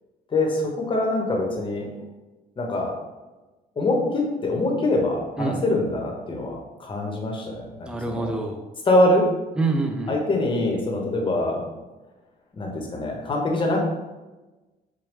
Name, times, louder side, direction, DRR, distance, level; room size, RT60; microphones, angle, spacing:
voice 1, 0.3-1.9 2.6-2.9 3.8-8.3 8.9-9.3 10.1-11.6 12.5-13.8, left 2 dB, 30° left, 0 dB, 0.9 m, -24 dB
voice 2, 7.9-8.6 9.6-10.1, right 3 dB, 5° right, 2 dB, 0.5 m, -26 dB
5.0 x 2.2 x 3.2 m, 1.1 s
cardioid pair, 110°, 17 cm